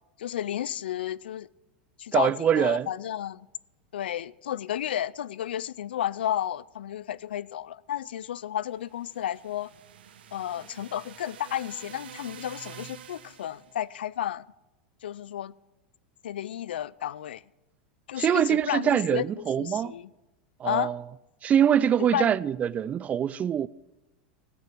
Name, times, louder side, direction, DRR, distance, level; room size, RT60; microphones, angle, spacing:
voice 1, 0.2-1.5 2.0-3.4 3.9-9.7 10.3-14.4 15.0-15.5 16.2-17.4 18.1-20.1 20.6-20.9 22.0-22.4, left 11 dB, 90° left, 0.4 m, -32 dB
voice 2, 2.1-2.9 18.2-19.9 20.6-21.0 21.4-23.7, right 9 dB, 25° right, 0.3 m, -24 dB
sound 1, 8.8-13.8, right 9 dB, 85° right, 1.0 m, -47 dB
14.0 x 8.7 x 6.0 m
hypercardioid pair, 115°, 5 cm